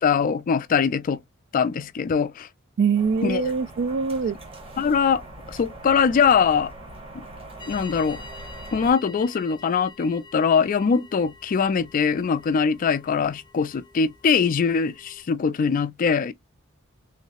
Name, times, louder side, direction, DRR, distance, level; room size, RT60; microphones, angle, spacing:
voice 1, 0.0-1.2 1.5-2.5 3.2-3.5 4.8-5.2 5.5-6.7 7.7-8.2 8.7-16.3, left 6 dB, 40° left, 0.3 m, -22 dB
voice 2, 2.8-4.4, right 5 dB, 60° right, 0.4 m, -23 dB
sound 1, 2.9-8.9, right 2 dB, 25° right, 1.0 m, -42 dB
sound 2, 7.6-15.2, left 3 dB, 20° left, 0.7 m, -47 dB
3.1 x 2.7 x 2.8 m
head